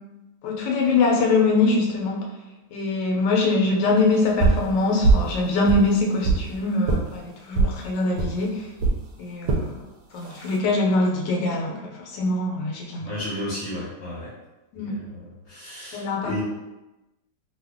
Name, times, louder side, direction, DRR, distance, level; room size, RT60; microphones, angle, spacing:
voice 1, 0.4-2.2 2.7-8.7 9.2-9.8 10.1-13.1 14.7-15.0 15.9-16.4, left 3 dB, 75° left, 0 dB, 1.2 m, -23 dB
sound 1, 4.4-4.7 5.0-5.3 5.7-6.5 6.9-7.0 7.5-7.8 8.2-8.3 8.8-9.0 9.5-9.7 10.2-10.6, right 3 dB, 70° right, 0.9 m, -20 dB
voice 2, 13.0-14.3 14.8-16.4, left 1 dB, 50° left, -7 dB, 0.9 m, -33 dB
2.7 x 2.6 x 3.4 m, 1.0 s
omnidirectional pair, 2.0 m